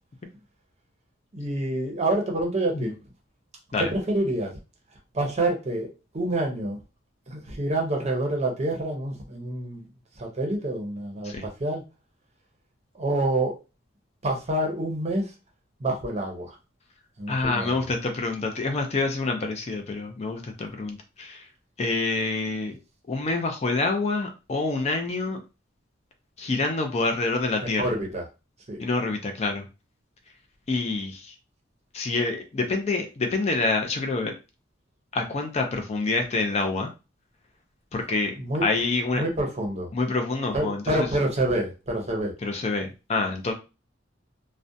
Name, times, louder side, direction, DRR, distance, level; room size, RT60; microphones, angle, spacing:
voice 1, 1.3-2.9 3.8-4.5 5.1-6.8 7.3-9.8 10.2-11.3 11.6-11.8 13.0-13.5 14.2-15.3 15.8-16.5 17.2-17.8 27.8-28.2 28.7-28.8 38.4-38.7 39.1-39.9 40.5-42.3, right 1 dB, 35° right, 1 dB, 0.6 m, -27 dB
voice 2, 17.3-21.4 21.8-22.8 23.1-25.4 26.4-28.0 28.8-29.6 30.7-31.2 31.9-34.3 35.1-36.9 37.9-38.3 38.6-39.2 39.9-41.1 42.4-43.5, left 3 dB, 35° left, 4 dB, 0.4 m, -27 dB
2.4 x 2.1 x 2.6 m, 0.29 s
head